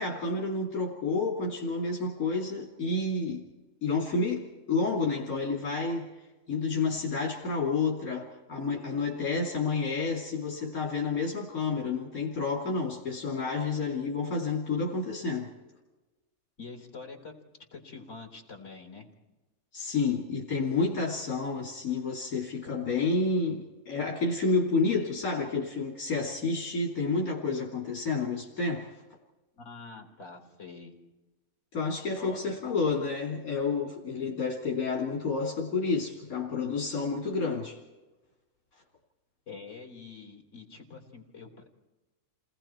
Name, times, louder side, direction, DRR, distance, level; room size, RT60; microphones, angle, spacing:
voice 1, 0.0-3.5 3.8-6.1 6.5-15.5 19.7-28.9 31.7-37.8, left 4 dB, 70° left, -2 dB, 3.2 m, -30 dB
voice 2, 16.6-17.3 17.7-19.1 27.5-27.6 29.6-31.0 32.1-32.7 39.5-41.7, left 4 dB, 50° left, 1 dB, 3.9 m, -45 dB
29.5 x 20.0 x 4.5 m, 1.1 s
omnidirectional pair, 1.6 m